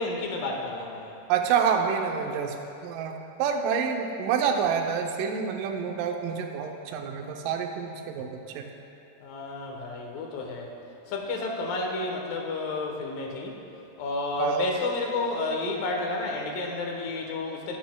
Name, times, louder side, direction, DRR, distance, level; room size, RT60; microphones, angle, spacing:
voice 1, 0.0-1.1 9.2-10.8 11.1-13.6 14.0-17.8, left 2 dB, 70° left, 1 dB, 2.6 m, -31 dB
voice 2, 1.3-2.6 2.8-8.7 14.4-14.7, right 7 dB, 80° right, 3 dB, 1.9 m, -28 dB
18.0 x 8.5 x 2.3 m, 2.9 s
omnidirectional pair, 4.6 m